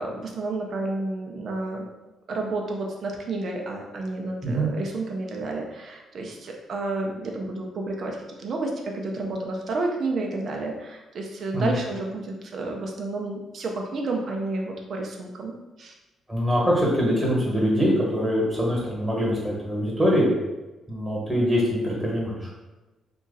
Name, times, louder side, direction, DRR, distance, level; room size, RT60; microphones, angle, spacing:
voice 1, 0.0-1.9 2.3-16.0, right 2 dB, 55° right, 1 dB, 0.7 m, -31 dB
voice 2, 16.3-20.3 20.9-22.5, equal, 10° right, -4 dB, 1.5 m, -23 dB
2.9 x 2.5 x 4.0 m, 1.1 s
cardioid pair, 90°, 0 cm